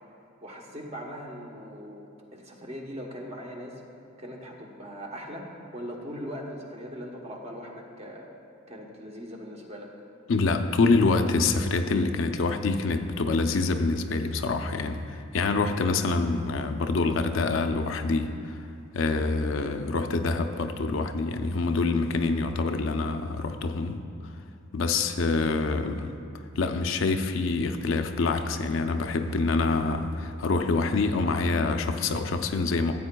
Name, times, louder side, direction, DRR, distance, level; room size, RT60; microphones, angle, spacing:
voice 1, 0.4-3.8 4.2-5.5 5.7-8.3 8.7-9.9, equal, 30° right, 0 dB, 1.0 m, -40 dB
voice 2, 10.3-18.7 18.9-24.0 24.7-26.1 26.6-32.9, left 3 dB, 65° left, 7 dB, 0.5 m, -26 dB
14.0 x 8.4 x 2.3 m, 2.4 s
head